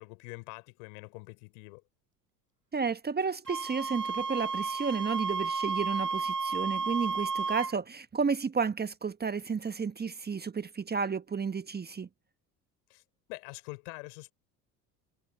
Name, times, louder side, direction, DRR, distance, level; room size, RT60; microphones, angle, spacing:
voice 1, 0.0-1.8 12.9-13.0 13.3-14.3, left 33 dB, 65° left, 5.1 m, -45 dB
voice 2, 2.7-12.1, right 5 dB, 20° right, 1.4 m, -32 dB
Wind instrument woodwind instrument, 3.5-7.7, right 4 dB, 90° right, 4.6 m, -32 dB
figure-of-eight pair, 60°, 47 cm